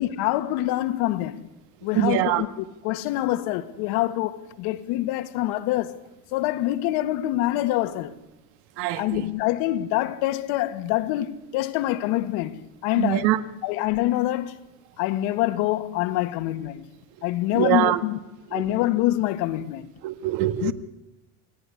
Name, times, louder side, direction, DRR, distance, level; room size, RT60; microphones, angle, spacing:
voice 1, 0.0-1.5 1.8-6.0 6.3-8.1 9.0-13.3 13.6-14.6 15.0-16.9 17.2-18.2 18.5-19.9 20.6-20.7, left 15 dB, 80° left, 1.8 m, -25 dB
voice 2, 1.9-2.4 8.8-9.2 13.0-13.4 17.5-18.0 18.5-18.6 20.0-20.7, right 14 dB, 85° right, 1.8 m, -23 dB
28.5 x 17.5 x 9.9 m
cardioid pair, 160°, 37 cm